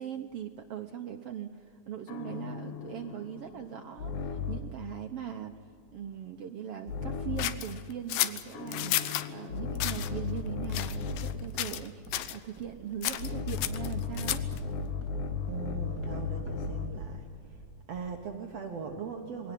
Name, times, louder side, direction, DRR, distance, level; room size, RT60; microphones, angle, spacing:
voice 1, 0.0-5.6 5.9-14.4, right 9 dB, 85° right, 5 dB, 1.3 m, -40 dB
sound 1, 2.1-4.8 6.9-7.7 8.5-11.5 13.2-17.1, left 5 dB, 65° left, 2.8 m, -35 dB
sound 2, 7.4-9.3 9.8-10.1 10.7-11.3 11.6-11.9 12.1-12.4 13.0-14.6, left 14 dB, 85° left, 2.7 m, -32 dB
Walk footsteps, 11.5-18.8, right 3 dB, 35° right, 3.5 m, -51 dB
voice 2, 15.5-17.3 17.9-19.5, right 5 dB, 55° right, 3 dB, 2.1 m, -39 dB
22.0 x 18.0 x 10.0 m, 2.2 s
omnidirectional pair, 4.0 m